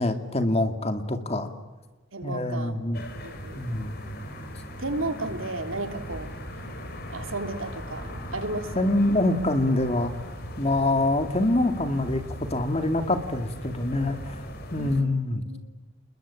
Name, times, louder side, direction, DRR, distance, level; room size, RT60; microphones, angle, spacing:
voice 1, 0.0-1.5 2.2-3.0 3.5-4.0 8.8-10.1 10.6-12.2 12.5-14.4 14.7-15.5, left 2 dB, 30° left, 7 dB, 2.3 m, -25 dB
voice 2, 2.1-2.7 3.1-3.6 4.8-6.6 7.1-8.9 14.8-15.6, right 2 dB, 75° right, 7 dB, 3.1 m, -34 dB
sound 1, 2.9-15.0, equal, 50° left, 4.3 m, -38 dB
29.5 x 21.0 x 8.8 m, 1.2 s
head